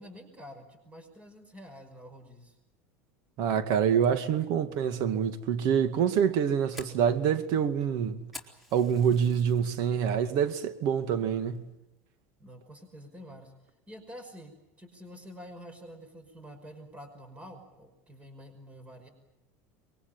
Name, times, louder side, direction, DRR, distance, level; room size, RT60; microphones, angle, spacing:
voice 1, 0.0-2.6 12.4-13.5 13.9-19.1, equal, 15° right, 5.6 m, -48 dB
voice 2, 3.4-8.3 8.7-11.7, right 8 dB, 60° right, 2.2 m, -26 dB
Fire, 6.3-9.7 10.1-10.5 10.9-11.0 11.6-11.9, left 2 dB, ahead, 4.1 m, -48 dB
24.0 x 22.5 x 9.0 m
supercardioid pair, 110°, 8 cm